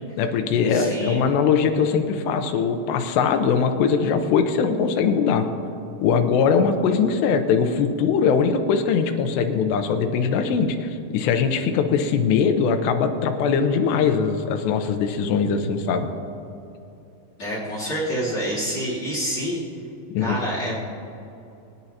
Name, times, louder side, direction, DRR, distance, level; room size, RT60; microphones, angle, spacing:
voice 1, 0.0-5.5 6.0-16.1 20.1-20.4, left 6 dB, 85° left, 6 dB, 2.7 m, -21 dB
voice 2, 0.7-1.2 17.4-19.6 20.2-20.8, equal, 35° left, -5 dB, 3.2 m, -27 dB
24.0 x 9.9 x 2.8 m, 2.7 s
omnidirectional pair, 5.2 m